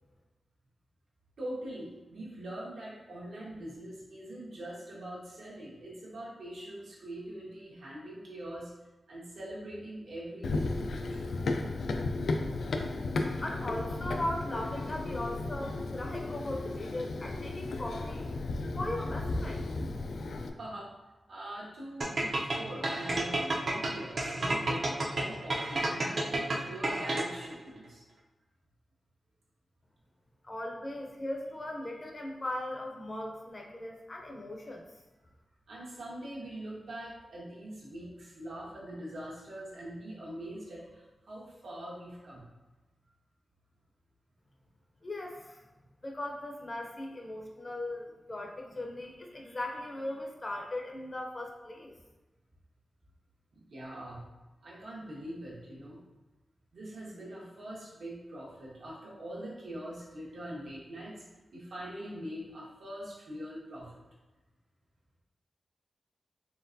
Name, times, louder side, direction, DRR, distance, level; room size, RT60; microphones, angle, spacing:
voice 1, 1.4-8.7 9.1-11.3 20.6-20.9 21.3-28.0 35.7-42.4 53.5-54.2 54.6-56.0 56.7-61.2 61.5-64.0, right 1 dB, 85° right, -6 dB, 1.3 m, -43 dB
Run, 10.4-20.5, left 2 dB, 85° left, 0.3 m, -34 dB
voice 2, 13.4-18.3 18.8-19.6 30.4-34.9 45.0-45.6 46.0-51.9, left 1 dB, 25° left, 0 dB, 0.5 m, -38 dB
sound 1, 22.0-27.5, right 2 dB, 50° right, 0.5 m, -31 dB
4.4 x 3.3 x 2.6 m, 1.1 s
wide cardioid pair, 170°, 0 cm